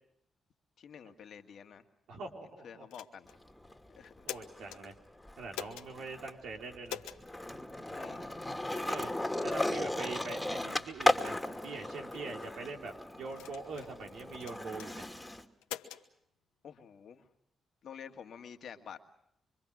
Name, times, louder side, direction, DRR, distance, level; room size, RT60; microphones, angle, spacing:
voice 1, 0.8-1.9 2.6-3.3 4.0-4.3 7.8-8.3 16.6-17.3 17.8-19.0, left 7 dB, 70° left, 7 dB, 1.8 m, -49 dB
voice 2, 2.1-2.9 4.3-4.9 5.4-7.0 8.9-9.1 9.4-15.1, right 3 dB, 75° right, 2 dB, 3.6 m, -43 dB
sound 1, 2.9-3.4 4.0-4.8 5.5-5.9 6.9-7.2 8.0-8.2 8.7-9.0 9.5-9.7 10.3-10.4 11.0-11.3 12.1-12.5 13.3-13.9 14.4-14.9 15.6-16.0, left 11 dB, 90° left, 1.1 m, -44 dB
Skateboard, 3.3-4.9 5.2-15.4, left 1 dB, 10° left, 2.6 m, -36 dB
25.0 x 25.0 x 6.3 m, 0.75 s
supercardioid pair, 45°, 0 cm